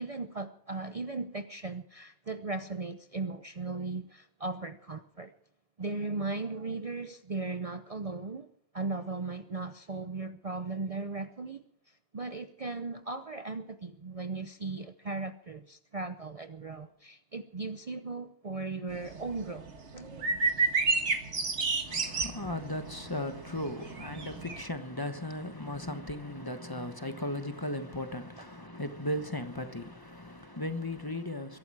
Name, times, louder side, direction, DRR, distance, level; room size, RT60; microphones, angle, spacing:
voice 1, 0.0-5.3 5.8-8.5 8.7-20.3 21.6-22.0, right 3 dB, 35° right, 0.7 m, -37 dB
sound 1, 18.9-24.6, right 4 dB, 80° right, 1.9 m, -30 dB
voice 2, 21.8-31.6, left 1 dB, 20° left, 1.2 m, -36 dB
22.0 x 12.0 x 4.8 m
omnidirectional pair, 1.2 m